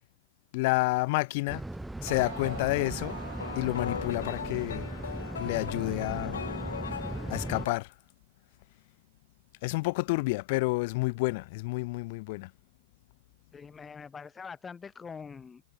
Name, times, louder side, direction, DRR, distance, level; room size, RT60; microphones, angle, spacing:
voice 1, 0.5-1.6 2.0-3.2 3.5-4.9 5.4-6.4 7.3-7.9 9.6-12.5, left 24 dB, 55° left, 1.6 m, -29 dB
sound 1, 1.0-1.1 1.7-1.8 2.1-4.5, right 14 dB, 65° right, 3.1 m, -46 dB
sound 2, 1.5-7.7, right 1 dB, 5° right, 0.6 m, -38 dB
sound 3, 2.1-7.8, left 7 dB, 80° left, 2.4 m, -39 dB
voice 2, 13.5-15.7, left 5 dB, 15° left, 1.3 m, -44 dB
hypercardioid pair, 110°, 0 cm